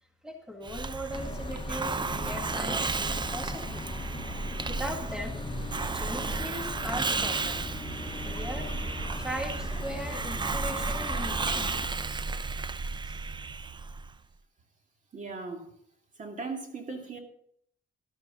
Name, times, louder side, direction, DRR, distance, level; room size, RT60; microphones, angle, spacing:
voice 1, 0.2-4.0 4.7-5.4 5.9-7.6 8.2-11.7 13.0-13.2, equal, 5° right, 3 dB, 1.8 m, -39 dB
Hiss, 0.6-14.1, right 4 dB, 25° right, 0.5 m, -33 dB
sound 1, 1.1-11.9, left 4 dB, 25° left, 0.8 m, -40 dB
voice 2, 15.1-15.7 16.2-17.2, right 4 dB, 40° right, 3 dB, 2.4 m, -38 dB
12.5 x 12.0 x 3.9 m, 0.68 s
cardioid pair, 90°, 20 cm